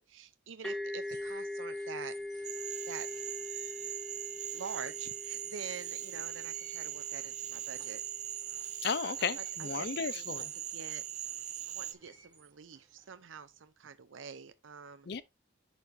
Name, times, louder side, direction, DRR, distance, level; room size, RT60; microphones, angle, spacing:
voice 1, 0.0-2.2 2.9-3.1 4.5-8.0 9.4-11.4 11.7-15.1, right 6 dB, 80° right, 0.5 m, -46 dB
sound 1, 0.6-8.2, left 1 dB, 5° left, 0.7 m, -42 dB
sound 2, 0.9-13.7, right 5 dB, 20° right, 1.8 m, -58 dB
Cricket / Frog, 2.4-11.9, right 11 dB, 40° right, 0.5 m, -40 dB
voice 2, 8.8-10.5 15.1-15.2, left 6 dB, 55° left, 0.5 m, -34 dB
10.5 x 4.3 x 2.6 m
head